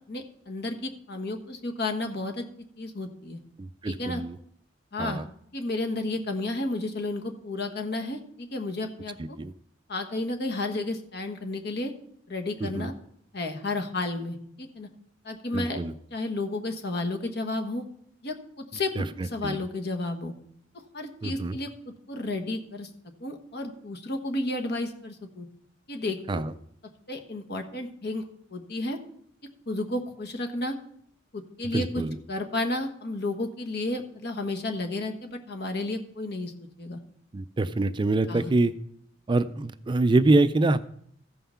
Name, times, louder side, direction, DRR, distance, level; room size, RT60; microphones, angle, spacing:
voice 1, 0.1-2.4 2.8-3.4 3.8-4.2 4.9-5.2 5.5-9.4 9.9-11.9 12.3-12.9 13.3-14.9 15.2-15.8 16.1-17.8 18.2-20.3 20.9-21.7 22.1-22.9 23.2-25.5 25.9-26.4 27.1-28.2 28.5-29.0 29.7-30.8 31.3-32.0 32.3-36.5 36.8-37.0 38.3-38.5, left 2 dB, 55° left, 4 dB, 1.4 m, -32 dB
voice 2, 3.6-4.4 5.0-5.3 9.4-9.5 12.6-12.9 15.5-15.9 19.0-19.6 21.2-21.6 26.3-26.5 31.7-32.2 37.3-38.7 39.3-40.8, right 2 dB, 25° right, 13 dB, 0.4 m, -25 dB
14.5 x 5.7 x 5.7 m, 0.67 s
head